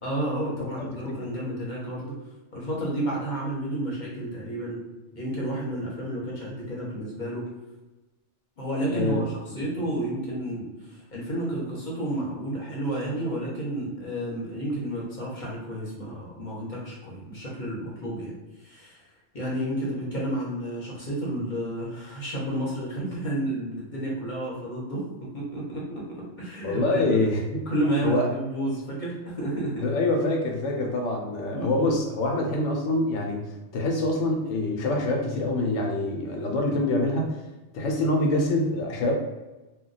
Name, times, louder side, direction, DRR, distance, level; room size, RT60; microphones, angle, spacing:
voice 1, 0.0-2.1 2.5-4.8 5.1-7.5 8.6-25.0 25.3-27.0 27.7-29.9 31.5-32.0, right 1 dB, 45° left, -5 dB, 0.8 m, -31 dB
voice 2, 8.9-9.2 26.6-27.6 28.0-28.3 29.8-33.4 33.7-37.3 37.7-39.1, left 2 dB, 80° left, 1 dB, 1.0 m, -25 dB
2.2 x 2.2 x 3.9 m, 1.1 s
omnidirectional pair, 1.2 m